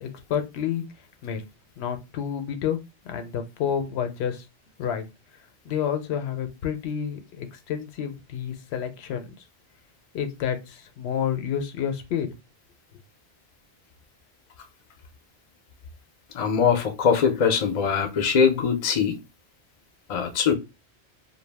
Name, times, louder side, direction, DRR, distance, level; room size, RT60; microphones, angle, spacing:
voice 1, 0.0-0.8 1.2-1.4 1.8-2.8 3.0-4.4 4.8-5.1 5.7-9.3 10.1-12.3, left 8 dB, 80° left, 0.8 m, -29 dB
voice 2, 16.3-19.2 20.1-20.5, left 6 dB, 45° left, 0.5 m, -22 dB
2.2 x 2.0 x 3.3 m
omnidirectional pair, 1.1 m